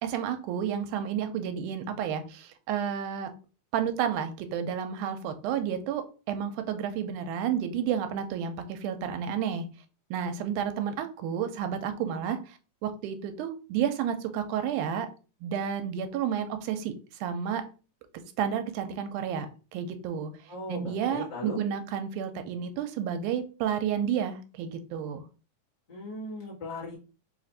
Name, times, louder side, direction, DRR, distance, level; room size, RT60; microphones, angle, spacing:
voice 1, 0.0-3.3 3.7-9.7 10.1-15.1 15.4-16.9 17.2-17.7 18.4-20.3 20.7-25.3, right 8 dB, 80° right, 8 dB, 2.0 m, -31 dB
voice 2, 20.5-21.6 25.9-26.9, left 2 dB, 30° left, -6 dB, 0.8 m, -38 dB
4.7 x 2.5 x 4.0 m, 0.34 s
omnidirectional pair, 3.6 m